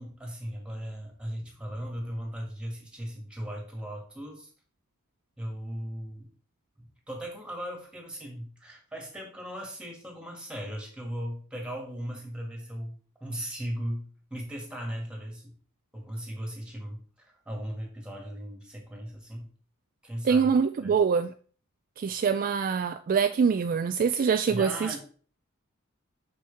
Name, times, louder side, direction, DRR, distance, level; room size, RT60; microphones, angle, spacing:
voice 1, 0.0-4.5 5.4-6.3 6.8-15.5 15.9-19.5 20.0-20.4 20.8-20.9 24.5-25.0, equal, 5° right, 2.0 m, -37 dB
voice 2, 20.2-21.3 22.0-24.9, right 6 dB, 40° right, 0.3 m, -24 dB
6.2 x 6.1 x 3.5 m
head